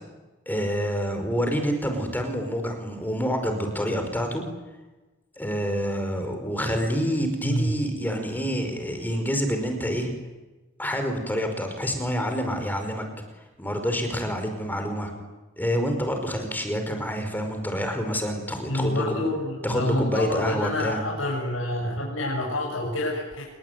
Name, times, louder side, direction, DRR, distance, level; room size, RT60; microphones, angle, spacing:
voice 1, 0.4-4.4 5.4-10.1 10.8-13.0 13.6-15.1 15.6-19.2 19.6-21.0, equal, 10° left, 5 dB, 5.2 m, -27 dB
voice 2, 18.7-23.5, left 1 dB, 80° left, -3 dB, 7.3 m, -28 dB
28.0 x 22.0 x 9.5 m, 1.1 s
head